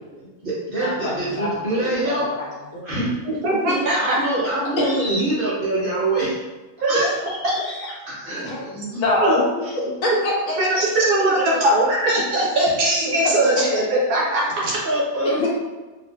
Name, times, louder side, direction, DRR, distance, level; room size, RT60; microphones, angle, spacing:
voice 1, 0.2-2.3 2.8-3.1 3.9-6.3 8.1-9.4 14.8-15.5, right 2 dB, 40° right, -9 dB, 1.4 m, -25 dB
voice 2, 0.8-2.8 3.7-3.8 4.8-5.2 6.9-7.9 8.3-9.4 9.7-10.6 11.4-11.6 13.2-13.6 15.2-15.5, left 2 dB, 70° left, -3 dB, 1.0 m, -26 dB
voice 3, 3.0-4.2 6.8-7.1 9.2-9.4 10.6-13.8 14.1-14.8, right 1 dB, 80° right, -5 dB, 1.4 m, -20 dB
4.2 x 2.0 x 2.3 m, 1.2 s
omnidirectional pair, 1.6 m